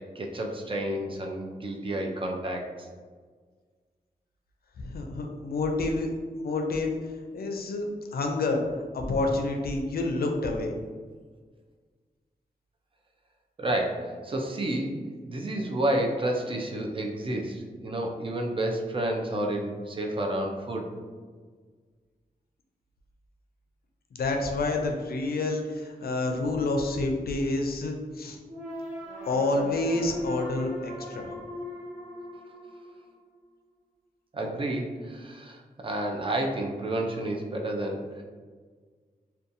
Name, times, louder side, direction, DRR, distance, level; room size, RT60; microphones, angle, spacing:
voice 1, 0.0-2.9 13.6-14.9 15.3-20.9 34.3-38.2, right 1 dB, 35° right, 1 dB, 0.4 m, -30 dB
voice 2, 4.8-6.1 6.3-6.9 7.3-8.6 8.9-10.7 24.1-28.4 29.2-31.3, left 2 dB, 80° left, 2 dB, 0.4 m, -28 dB
sound 1, 28.5-33.5, left 1 dB, 50° right, 1.1 m, -40 dB
2.7 x 2.2 x 2.5 m, 1.5 s
wide cardioid pair, 120°, 15 cm